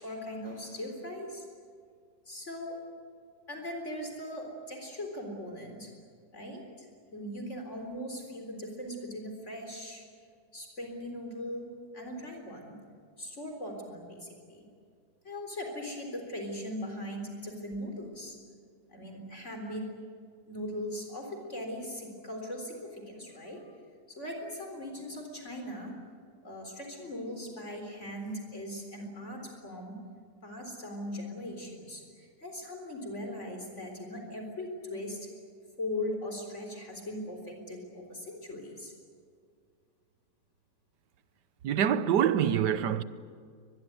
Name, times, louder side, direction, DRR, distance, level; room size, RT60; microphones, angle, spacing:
voice 1, 0.0-1.5 2.3-2.8 3.5-5.9 6.3-10.0 10.5-12.8 13.2-14.7 15.2-18.4 18.9-20.0 20.5-23.7 24.1-25.9 26.4-30.0 30.4-35.3 35.8-38.9, left 1 dB, 45° left, 4.2 m, -39 dB
voice 2, 41.6-43.0, right 9 dB, 80° right, 1.6 m, -25 dB
23.5 x 21.5 x 9.5 m
omnidirectional pair, 1.8 m